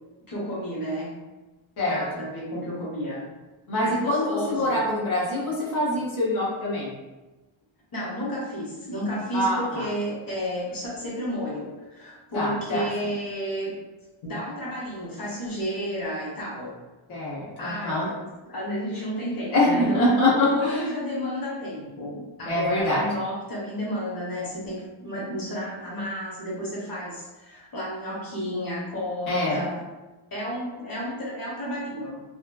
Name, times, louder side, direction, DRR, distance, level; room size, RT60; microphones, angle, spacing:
voice 1, 0.3-1.1 1.9-3.2 3.8-4.8 7.9-13.7 14.2-16.7 17.6-18.2 18.5-20.0 20.3-29.8 30.3-32.2, equal, 45° left, -6 dB, 0.9 m, -32 dB
voice 2, 3.7-6.9 9.3-9.8 12.3-12.8 17.1-18.1 19.5-20.9 22.5-23.0 29.3-29.6, left 1 dB, 80° left, -7 dB, 0.9 m, -24 dB
2.9 x 2.2 x 2.3 m, 1.1 s
wide cardioid pair, 145°, 47 cm